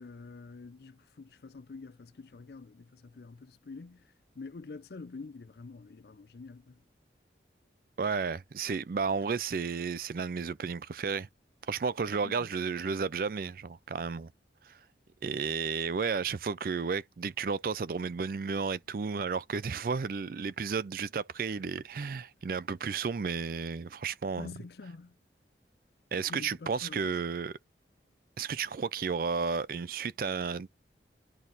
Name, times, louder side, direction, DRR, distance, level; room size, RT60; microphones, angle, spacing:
voice 1, 0.0-4.0 4.4-6.8 12.2-12.5 24.4-25.1 26.3-27.2, left 4 dB, 60° left, 0.5 m, -46 dB
voice 2, 8.0-11.3 11.7-14.3 14.6-14.8 15.2-24.5 26.1-27.6 28.4-30.7, right 5 dB, 50° right, 0.4 m, -33 dB
11.0 x 4.1 x 2.6 m
head